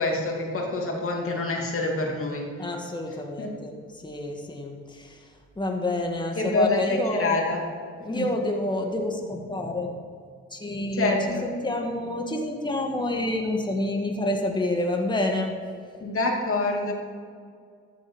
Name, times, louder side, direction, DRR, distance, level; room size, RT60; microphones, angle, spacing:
voice 1, 0.0-2.5 3.4-3.5 6.3-7.6 8.1-8.3 10.9-11.5 16.0-16.9, left 2 dB, 45° left, 0 dB, 2.6 m, -26 dB
voice 2, 2.6-7.4 8.0-10.0 10.5-11.2 11.4-15.6, left 1 dB, 15° left, 2 dB, 1.7 m, -28 dB
13.5 x 8.6 x 4.7 m, 2.2 s
cardioid pair, 90°, 30 cm